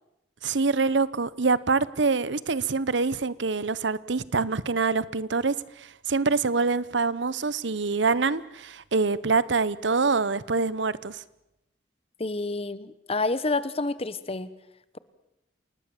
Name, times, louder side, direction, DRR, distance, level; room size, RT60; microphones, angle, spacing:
voice 1, 0.4-5.5 6.1-11.2, right 4 dB, 75° right, 19 dB, 0.9 m, -25 dB
voice 2, 12.2-14.5, left 3 dB, 35° left, 15 dB, 1.2 m, -28 dB
28.5 x 19.0 x 7.2 m, 0.88 s
head